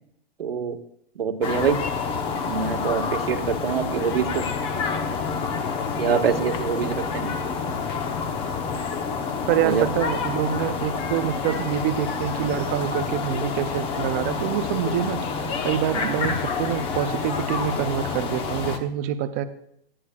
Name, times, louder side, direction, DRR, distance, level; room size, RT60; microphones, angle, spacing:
voice 1, 0.4-0.8 1.2-1.8 2.5-4.4 6.0-7.3 9.6-9.9, right 7 dB, 75° right, 5 dB, 1.7 m, -25 dB
sound 1, 1.4-18.8, left 5 dB, 20° left, 0.9 m, -28 dB
voice 2, 9.5-19.4, right 11 dB, 15° right, 10 dB, 0.4 m, -26 dB
18.5 x 12.0 x 2.3 m, 0.73 s
hypercardioid pair, 155°, 30 cm